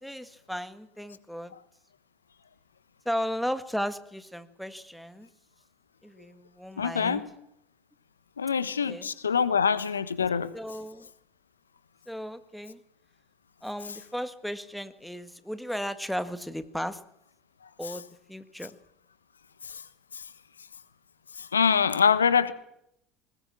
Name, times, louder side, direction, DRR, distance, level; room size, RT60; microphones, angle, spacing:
voice 1, 0.0-1.5 3.1-5.3 6.0-7.2 8.8-9.1 10.5-11.1 12.1-12.8 13.6-17.0 17.8-18.0 18.3-18.7, equal, ahead, 11 dB, 1.8 m, -35 dB
voice 2, 6.8-7.2 8.4-10.5 19.6-19.8 21.4-22.5, left 6 dB, 85° left, 15 dB, 1.2 m, -24 dB
20.5 x 20.0 x 7.6 m, 0.76 s
figure-of-eight pair, 65°, 0 cm